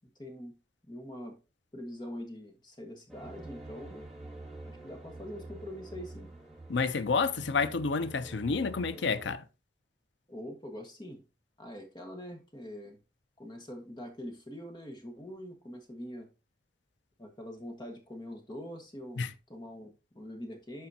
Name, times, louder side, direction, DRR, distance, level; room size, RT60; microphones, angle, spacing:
voice 1, 0.2-0.5 0.8-1.4 1.7-4.1 4.6-6.4 10.3-11.2 11.6-13.0 13.4-16.3 17.2-20.9, equal, 25° left, 1.5 m, -44 dB
sound 1, 3.1-9.3, right 2 dB, ahead, 2.1 m, -47 dB
voice 2, 6.7-9.4 19.2-19.3, left 4 dB, 90° left, 0.6 m, -29 dB
12.0 x 4.3 x 2.8 m
head